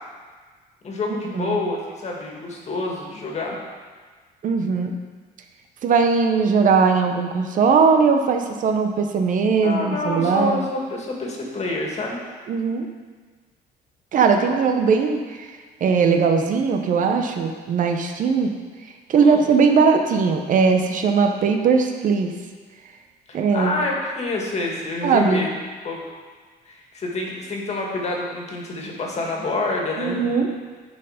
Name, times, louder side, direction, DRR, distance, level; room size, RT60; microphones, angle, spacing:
voice 1, 0.8-3.6 9.6-12.2 19.2-19.5 23.3-25.5 25.8-26.0 26.6-30.4, left 2 dB, 40° left, -1 dB, 2.0 m, -27 dB
voice 2, 4.4-4.9 5.8-10.6 12.5-12.9 14.1-15.5 15.8-18.5 19.1-22.3 23.3-23.7 25.0-25.4 30.0-30.5, right 5 dB, 50° right, 5 dB, 0.8 m, -19 dB
10.5 x 4.7 x 5.0 m, 1.5 s
cardioid pair, 110°, 17 cm